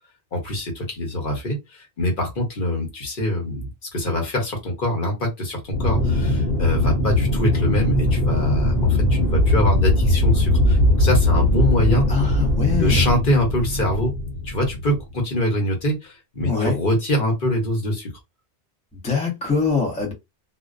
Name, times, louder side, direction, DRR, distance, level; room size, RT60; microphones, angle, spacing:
voice 1, 0.3-12.3 12.8-14.1 14.4-18.1, left 1 dB, 55° left, 1.1 m, -24 dB
Aircraft, 5.7-15.2, left 1 dB, 80° left, 1.0 m, -20 dB
voice 2, 12.1-13.1 16.4-16.8 18.9-20.1, left 5 dB, 10° left, 0.6 m, -23 dB
2.4 x 2.1 x 2.4 m
omnidirectional pair, 1.1 m